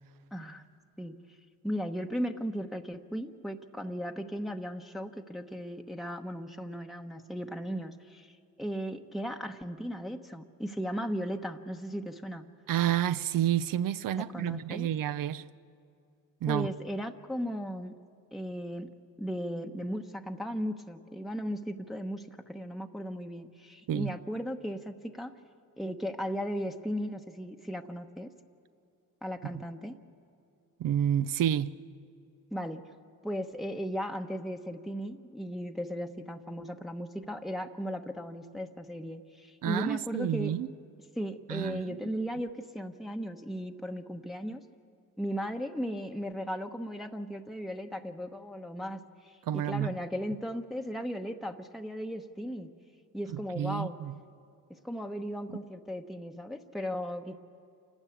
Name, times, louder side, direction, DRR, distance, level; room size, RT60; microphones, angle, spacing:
voice 1, 0.3-0.6 1.0-1.2 1.6-12.5 14.2-14.9 16.5-17.9 18.3-18.9 19.2-25.3 25.8-28.3 29.2-29.9 32.5-32.8 33.2-40.6 41.1-44.7 45.2-52.7 53.1-54.0 54.7-57.3, equal, ahead, 1.0 m, -36 dB
voice 2, 12.7-15.4 16.4-16.7 23.9-24.1 30.8-31.7 39.6-40.7 41.5-42.0 49.5-50.0 53.6-54.1 55.5-55.6, right 10 dB, 65° right, 0.7 m, -29 dB
28.0 x 13.0 x 8.6 m
cardioid pair, 80°, 37 cm